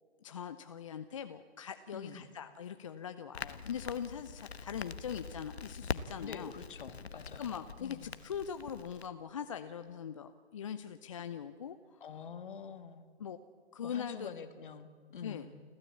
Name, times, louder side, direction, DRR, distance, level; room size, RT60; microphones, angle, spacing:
voice 1, 0.2-6.5 7.4-12.2 13.2-13.4 13.7-14.3 15.2-15.5, left 8 dB, 30° left, 9 dB, 0.6 m, -41 dB
voice 2, 1.9-2.3 6.2-8.2 12.0-13.1 13.8-15.6, left 6 dB, 50° left, 10 dB, 1.9 m, -47 dB
Crackle, 3.3-9.1, left 5 dB, 70° left, 1.2 m, -44 dB
29.5 x 13.0 x 8.5 m, 2.2 s
figure-of-eight pair, 140°, 34 cm